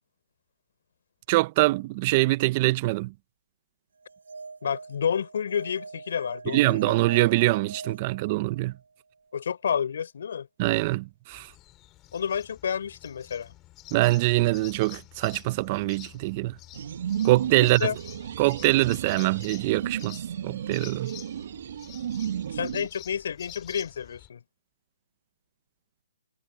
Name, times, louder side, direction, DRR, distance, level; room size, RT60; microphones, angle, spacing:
voice 1, 1.3-3.1 6.5-8.7 10.6-11.5 13.9-16.6 17.2-17.9 18.4-20.2 20.4-21.1, right 20 dB, 35° right, 0.9 m, -24 dB
sound 1, 4.0-8.8, right 4 dB, 85° right, 1.3 m, -42 dB
voice 2, 4.6-6.9 9.3-10.5 12.1-13.5 17.6-18.0 22.5-24.4, left 7 dB, 65° left, 4.2 m, -30 dB
sound 2, 11.3-24.3, left 17 dB, 25° left, 6.4 m, -49 dB
sound 3, 16.7-22.9, right 9 dB, 60° right, 1.9 m, -33 dB
hypercardioid pair, 150°, 0 cm